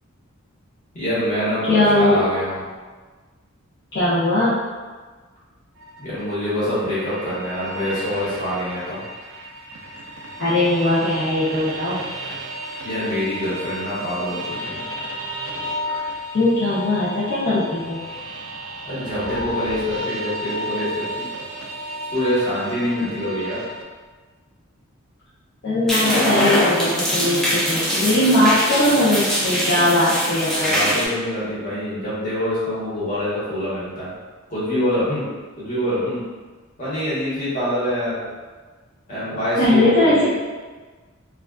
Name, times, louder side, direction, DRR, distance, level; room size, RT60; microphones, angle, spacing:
voice 1, 0.9-2.6 6.0-9.0 12.8-14.8 18.8-21.2 22.1-23.6 30.6-34.1 34.5-35.3 35.6-36.2 36.8-38.2 39.1-40.2, left 1 dB, 40° left, -11 dB, 1.1 m, -25 dB
voice 2, 1.7-2.2 3.9-4.6 10.4-12.0 16.3-18.0 23.0-23.1 25.6-30.8 39.3-40.2, left 1 dB, 55° left, -12 dB, 0.6 m, -19 dB
sound 1, 5.8-23.8, equal, 75° right, 0.4 m, -33 dB
sound 2, 25.9-31.1, equal, ahead, 0.4 m, -22 dB
2.4 x 2.3 x 2.2 m, 1.4 s
head